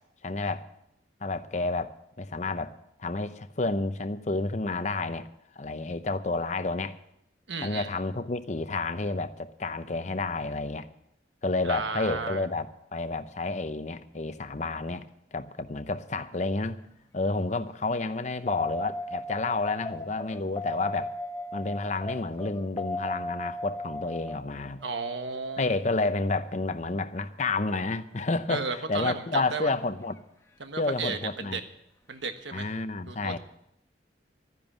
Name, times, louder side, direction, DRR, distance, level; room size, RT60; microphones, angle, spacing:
voice 1, 0.2-0.7 1.2-2.7 3.0-5.3 5.6-7.0 7.6-10.9 11.4-16.8 17.1-21.1 21.5-24.8 25.6-30.2 30.8-31.6 32.5-33.4, left 3 dB, 40° left, 0.7 m, -30 dB
voice 2, 7.5-7.9 11.6-12.5 24.8-25.7 28.5-29.7 30.6-31.6 32.1-32.7 33.1-33.4, right 4 dB, 85° right, 1.3 m, -33 dB
sound 1, 18.5-26.9 29.5-29.6, left 2 dB, 15° left, 0.9 m, -37 dB
13.0 x 10.5 x 7.3 m
head